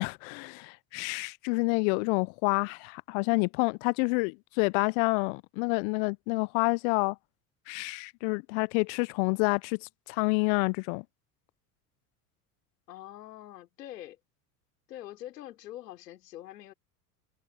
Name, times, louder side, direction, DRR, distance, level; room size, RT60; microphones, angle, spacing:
voice 1, 0.0-7.2 7.7-9.8 10.1-11.0, left 33 dB, 60° left, 0.6 m, -28 dB
voice 2, 12.9-14.2 14.9-16.7, left 13 dB, 80° left, 3.5 m, -44 dB
hypercardioid pair, 80°, 48 cm